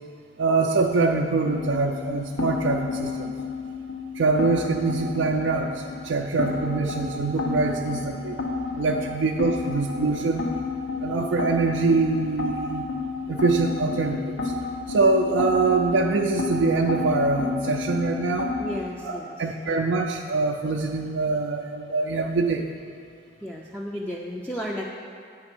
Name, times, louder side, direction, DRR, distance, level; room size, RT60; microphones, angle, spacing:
voice 1, 0.4-3.3 4.2-8.4 8.7-10.4 11.0-12.9 13.3-14.5 14.9-18.5 19.0-22.7, right 3 dB, 75° right, 2 dB, 0.4 m, -24 dB
sound 1, 1.4-18.8, left 4 dB, 85° left, 0.8 m, -31 dB
voice 2, 18.6-19.3 23.4-24.9, equal, 5° left, -4 dB, 0.4 m, -33 dB
8.8 x 4.1 x 6.0 m, 2.2 s
head